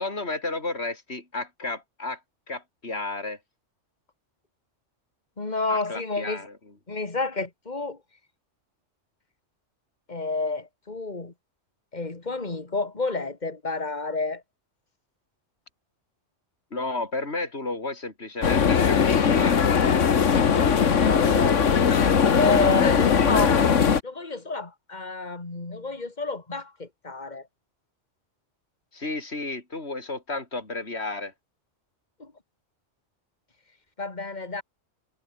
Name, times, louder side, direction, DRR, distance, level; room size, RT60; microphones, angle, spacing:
voice 1, 0.0-2.2 2.5-3.4 5.7-6.5 16.7-19.7 28.9-31.3, left 2 dB, 60° left, 4.6 m, -32 dB
voice 2, 5.4-6.4 6.9-8.0 10.1-11.3 11.9-14.4 20.2-21.6 21.9-27.5 32.2-32.3 34.0-34.6, left 3 dB, 35° left, 2.8 m, -30 dB
sound 1, 18.4-24.0, left 6 dB, 80° left, 1.7 m, -20 dB
omnidirectional pair, 1.2 m